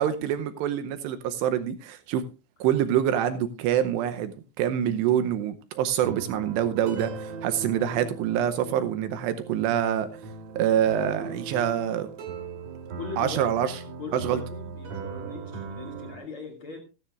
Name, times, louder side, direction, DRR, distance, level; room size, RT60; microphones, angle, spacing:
voice 1, 0.0-2.2 2.6-4.3 4.6-10.1 10.6-12.1 13.2-13.7 14.1-14.4, right 10 dB, 85° right, 11 dB, 2.5 m, -26 dB
sound 1, 6.0-16.2, right 4 dB, 65° right, 1.8 m, -39 dB
voice 2, 13.0-13.5 14.0-16.8, left 4 dB, 35° left, 2 dB, 2.2 m, -40 dB
15.5 x 14.5 x 2.5 m, 0.29 s
omnidirectional pair, 5.9 m